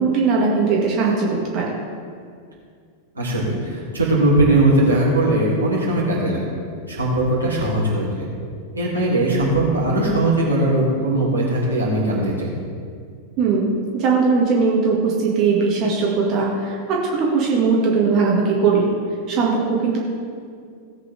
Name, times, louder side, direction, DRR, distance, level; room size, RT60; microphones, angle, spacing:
voice 1, 0.0-1.8 13.4-18.9 19.3-20.0, right 4 dB, 40° right, -3 dB, 2.0 m, -19 dB
voice 2, 3.1-6.4 6.9-8.2 8.7-12.5, right 1 dB, 80° right, -5 dB, 3.1 m, -19 dB
17.5 x 8.3 x 3.5 m, 2.2 s
figure-of-eight pair, 90°, 0 cm